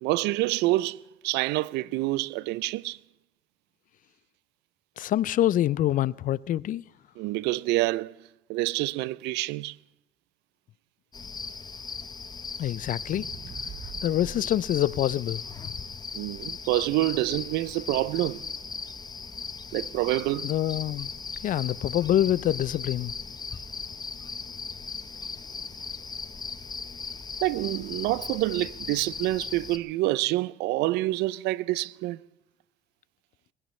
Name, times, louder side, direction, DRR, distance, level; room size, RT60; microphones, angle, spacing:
voice 1, 0.0-3.0 7.2-8.1 8.5-9.8 16.1-18.5 19.7-20.5 27.4-32.2, right 18 dB, 90° right, 0.4 m, -27 dB
voice 2, 5.0-6.8 12.6-13.3 14.0-15.7 20.4-21.1 21.4-23.1, left 12 dB, 50° left, 0.5 m, -26 dB
sound 1, 11.1-29.8, left 5 dB, 25° left, 0.9 m, -38 dB
sound 2, 12.9-17.2 17.7-17.8, right 7 dB, 50° right, 1.2 m, -46 dB
20.5 x 16.5 x 3.2 m
cardioid pair, 110°, 17 cm